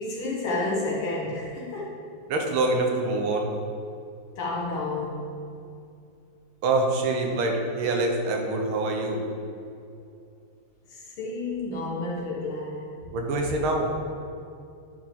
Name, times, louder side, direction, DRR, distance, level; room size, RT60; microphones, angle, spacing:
voice 1, 0.0-1.9 4.4-5.2 10.9-13.1, left 2 dB, 70° left, -5 dB, 2.3 m, -30 dB
voice 2, 2.3-3.5 6.6-9.3 13.1-13.9, right 2 dB, 75° right, 2 dB, 1.7 m, -25 dB
10.5 x 4.7 x 3.7 m, 2.5 s
omnidirectional pair, 2.4 m